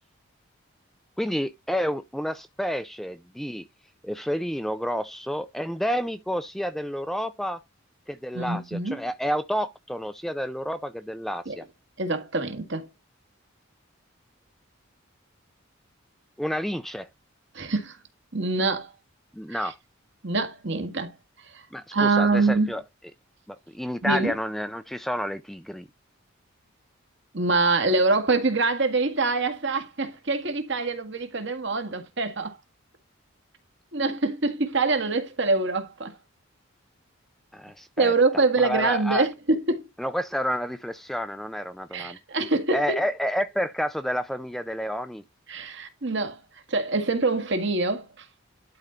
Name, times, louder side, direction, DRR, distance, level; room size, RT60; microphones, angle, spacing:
voice 1, 1.2-3.6 4.0-7.6 8.1-11.6 16.4-17.1 19.3-19.7 21.7-22.8 23.5-25.9 37.5-38.1 38.6-39.3 40.0-42.2 42.7-45.2, equal, ahead, 0.4 m, -30 dB
voice 2, 8.3-9.0 11.5-11.6 12.0-12.9 17.5-18.0 18.3-18.9 19.5-19.7 20.2-21.1 21.5-21.6 21.9-22.7 24.0-24.3 27.3-32.6 33.9-36.2 38.0-39.8 41.9-42.8 45.5-46.4 46.7-48.2, right 3 dB, 60° right, 1.8 m, -25 dB
11.5 x 4.3 x 3.8 m
head